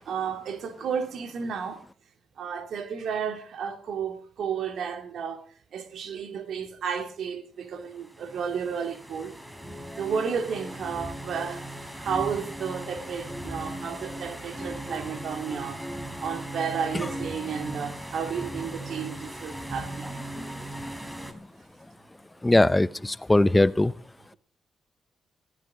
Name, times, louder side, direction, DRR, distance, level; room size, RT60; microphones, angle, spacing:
voice 1, 0.0-1.8 2.4-5.5 5.7-9.3 10.0-11.6 12.0-15.8 16.2-20.1, right 6 dB, 70° right, 2.5 m, -32 dB
sound 1, 7.9-21.3, right 1 dB, 15° right, 4.1 m, -38 dB
voice 2, 22.4-23.9, left 2 dB, 15° left, 0.7 m, -20 dB
19.5 x 16.5 x 3.8 m
supercardioid pair, 55°, 0 cm